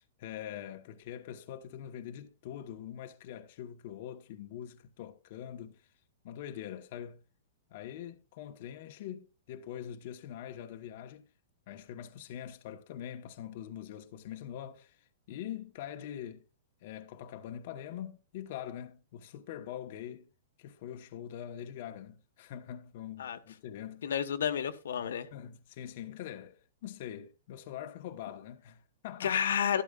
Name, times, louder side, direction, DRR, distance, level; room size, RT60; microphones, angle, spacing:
voice 1, 0.0-5.9 6.2-7.2 7.7-11.3 11.7-16.4 16.8-20.3 20.6-24.0 25.3-29.4, left 10 dB, 45° left, 1.0 m, -43 dB
voice 2, 24.0-25.3 29.2-29.8, left 8 dB, 85° left, 1.3 m, -30 dB
12.5 x 12.0 x 2.3 m
hypercardioid pair, 165°, 0 cm